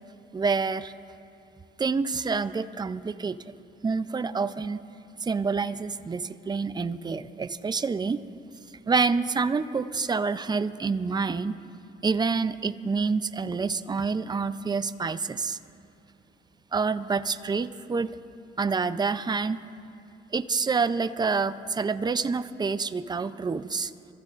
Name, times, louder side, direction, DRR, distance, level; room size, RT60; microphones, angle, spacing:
voice 1, 0.3-0.9 1.8-3.4 3.8-4.8 5.2-8.2 8.9-11.6 12.0-15.6 16.7-18.2 18.6-19.6 20.3-23.9, right 4 dB, 20° right, 12 dB, 0.5 m, -27 dB
26.5 x 14.5 x 2.5 m, 2.6 s
cardioid pair, 90°, 20 cm